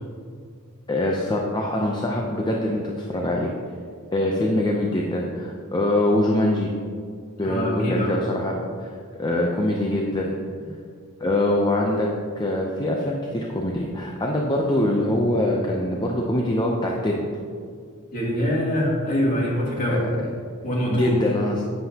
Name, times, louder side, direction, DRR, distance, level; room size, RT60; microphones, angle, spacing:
voice 1, 0.9-3.5 4.1-6.7 7.4-8.9 9.2-10.4 11.2-12.1 12.4-17.2 19.9-20.1 20.9-21.6, left 1 dB, 20° left, -1 dB, 0.6 m, -23 dB
voice 2, 7.4-8.1 18.1-20.0 20.6-21.1, equal, 40° left, -4 dB, 2.2 m, -24 dB
10.5 x 7.9 x 2.9 m, 2.1 s
head